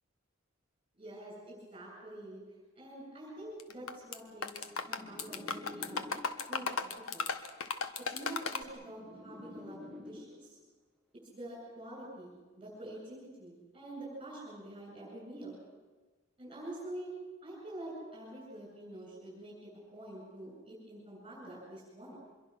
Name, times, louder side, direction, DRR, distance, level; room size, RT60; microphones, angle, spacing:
voice 1, 1.0-2.4 2.7-6.0 6.5-7.3 8.0-9.8 10.1-10.6 11.3-15.6 16.4-17.1 17.4-22.2, right 1 dB, 25° right, -4 dB, 7.9 m, -46 dB
sound 1, 3.6-4.2 4.4-8.6, left 5 dB, 90° left, 1.4 m, -35 dB
sound 2, 3.7-6.7 7.7-10.7 11.7-12.1, left 2 dB, ahead, 2.0 m, -51 dB
25.0 x 22.5 x 6.3 m, 1.3 s
head